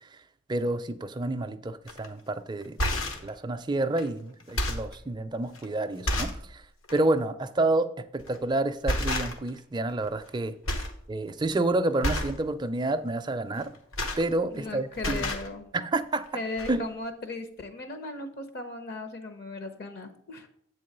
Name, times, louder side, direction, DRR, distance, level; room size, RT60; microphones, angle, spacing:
voice 1, 0.5-6.6 6.9-10.6 11.1-13.7 14.2-15.3 15.7-16.3 16.7-16.9, right 2 dB, 20° right, 0.4 m, -29 dB
sound 1, 1.9-2.1 2.6-3.3 4.0-4.1 4.4-5.0 5.6-5.7 6.1-6.5 6.8-7.0 8.2-8.4 8.9-9.6 9.9-10.4 10.7-11.0 11.3-11.6 12.0-12.4 13.6-14.7 14.9-15.5 16.3-16.4 16.6-16.7, left 1 dB, 80° left, 1.2 m, -30 dB
voice 2, 14.5-15.7 16.3-20.5, left 2 dB, 50° left, 0.7 m, -37 dB
8.1 x 3.8 x 6.6 m
head